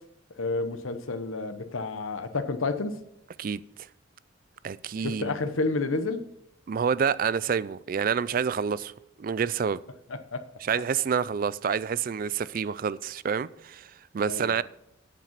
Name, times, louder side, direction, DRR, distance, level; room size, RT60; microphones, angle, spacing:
voice 1, 0.4-3.0 5.0-6.2 10.1-10.4 14.3-14.6, left 3 dB, 80° left, 0.9 m, -30 dB
voice 2, 3.4-3.9 4.6-5.4 6.7-8.9 9.2-9.8 10.6-14.6, right 6 dB, 45° right, 0.3 m, -28 dB
8.9 x 7.4 x 5.9 m
head